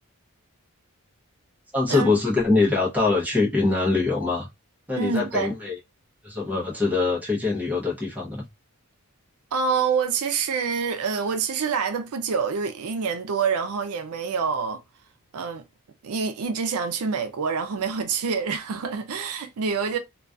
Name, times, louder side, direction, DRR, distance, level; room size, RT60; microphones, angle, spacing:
voice 1, 1.7-4.5 4.9-5.8 6.2-8.5, left 3 dB, 5° right, 0.7 m, -23 dB
voice 2, 5.0-5.5 9.5-14.8 15.3-15.6 16.0-20.0, right 5 dB, 75° right, 0.4 m, -26 dB
2.3 x 2.3 x 2.4 m
head